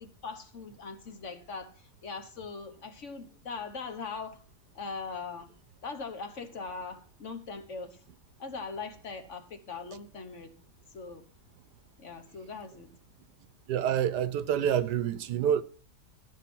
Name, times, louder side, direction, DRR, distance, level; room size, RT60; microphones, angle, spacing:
voice 1, 0.0-4.4 4.7-5.5 5.8-8.0 8.4-10.5 10.9-11.2 12.0-12.9, left 4 dB, 50° left, 1.4 m, -40 dB
voice 2, 13.7-15.6, right 9 dB, 85° right, 1.4 m, -27 dB
13.5 x 5.9 x 6.0 m
omnidirectional pair, 1.7 m